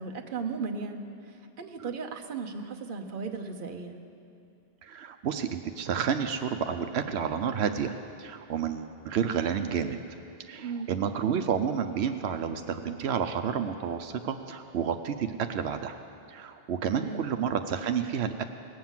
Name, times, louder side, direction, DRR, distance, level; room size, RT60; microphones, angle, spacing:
voice 1, 0.0-3.9 10.6-10.9 16.9-17.3, right 4 dB, 55° right, 4 dB, 1.0 m, -36 dB
voice 2, 4.8-7.9 8.2-10.0 10.4-16.0 16.3-18.4, right 7 dB, 85° right, 8 dB, 0.9 m, -30 dB
19.0 x 7.7 x 7.3 m, 2.6 s
omnidirectional pair, 1.1 m